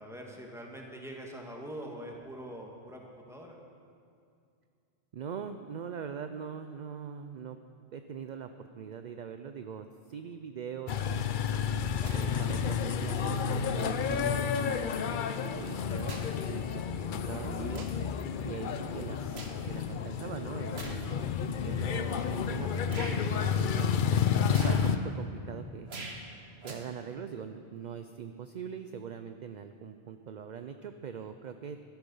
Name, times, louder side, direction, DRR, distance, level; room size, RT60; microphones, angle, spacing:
voice 1, 0.0-3.6, right 1 dB, 5° right, -1 dB, 1.6 m, -43 dB
voice 2, 5.1-7.6 7.9-11.5 12.1-16.2 16.5-17.9 18.4-23.9 24.4-25.9 26.6-31.8, right 7 dB, 55° right, 8 dB, 0.6 m, -42 dB
sound 1, 10.9-25.0, left 7 dB, 60° left, 0.7 m, -31 dB
sound 2, 12.0-12.3 13.3-13.4 14.1-14.4 15.6-16.4 16.8-17.0 17.7-18.1 18.5-19.6 20.7-21.1 21.8-21.9 22.9-23.2 24.5-24.9 25.9-26.3 26.6-26.7, right 3 dB, 90° right, 1.6 m, -43 dB
12.5 x 12.0 x 5.5 m, 2.4 s
omnidirectional pair, 1.0 m